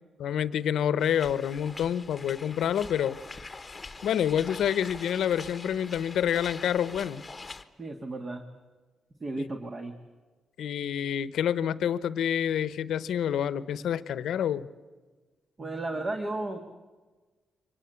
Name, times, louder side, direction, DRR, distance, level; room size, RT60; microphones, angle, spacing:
voice 1, 0.2-3.2 4.0-7.2 9.4-9.5 10.6-14.7, left 9 dB, 85° left, 17 dB, 0.9 m, -28 dB
sound 1, 1.0-7.6, left 3 dB, 20° left, 1.2 m, -44 dB
voice 2, 7.8-8.4 9.2-9.9 15.6-16.6, right 2 dB, 35° right, 6 dB, 1.8 m, -34 dB
24.0 x 20.0 x 8.2 m, 1.3 s
cardioid pair, 110°, 0 cm